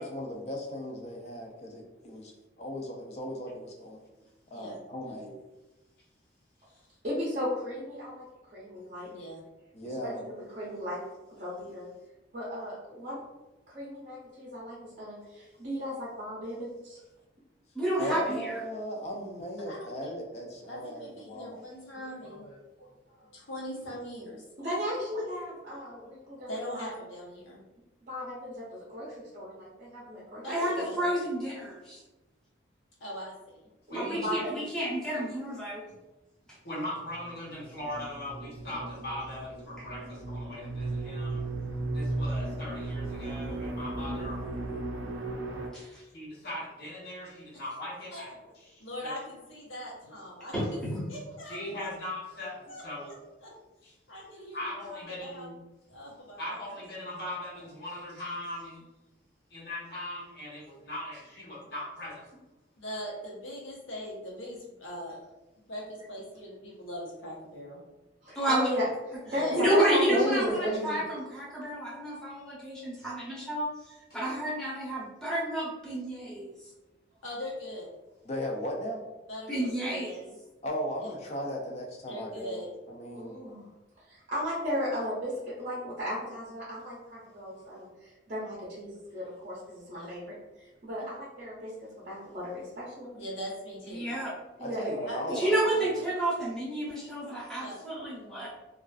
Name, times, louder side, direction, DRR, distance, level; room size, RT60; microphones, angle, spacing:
voice 1, 0.0-2.3 2.6-4.0 4.5-5.4 9.7-10.2 18.0-21.6 70.1-71.0 78.3-79.0 80.6-83.4 94.6-96.0, equal, 35° left, 0 dB, 0.4 m, -36 dB
voice 2, 7.0-8.2 8.5-9.1 10.0-11.0 11.3-11.9 12.3-13.2 13.7-17.0 24.6-27.0 28.1-30.9 33.9-34.9 35.3-35.4 68.2-70.8 83.2-83.6 84.1-91.7 92.1-93.2 94.6-95.1, equal, 40° right, -7 dB, 0.5 m, -35 dB
voice 3, 9.1-9.4 18.1-18.2 19.7-20.1 20.7-24.4 26.5-27.6 30.4-31.1 33.0-33.7 47.5-47.6 48.1-48.3 48.8-50.5 51.1-51.9 52.7-53.5 54.1-55.5 55.9-56.8 62.8-65.2 65.6-67.8 69.3-69.6 77.2-77.9 79.3-80.4 82.1-82.7 89.9-90.1 91.0-91.1 93.1-94.1 95.1-95.4 97.6-97.8, equal, 85° left, -4 dB, 0.8 m, -41 dB
voice 4, 17.7-18.6 30.5-32.0 33.9-35.8 45.7-46.0 50.5-51.0 68.4-68.7 69.5-73.7 74.1-76.5 79.5-80.2 93.9-94.3 95.3-98.5, right 1 dB, 5° left, -7 dB, 0.7 m, -30 dB
voice 5, 33.9-34.3 36.6-41.5 41.9-44.4 46.0-48.3 49.0-49.1 51.5-53.1 53.8-53.9 54.5-55.6 56.4-58.8 59.5-62.2 68.3-68.4, left 1 dB, 55° left, -7 dB, 0.9 m, -39 dB
sound 1, 37.2-45.7, right 2 dB, 85° right, 0.4 m, -36 dB
2.4 x 2.3 x 2.3 m, 1.1 s
head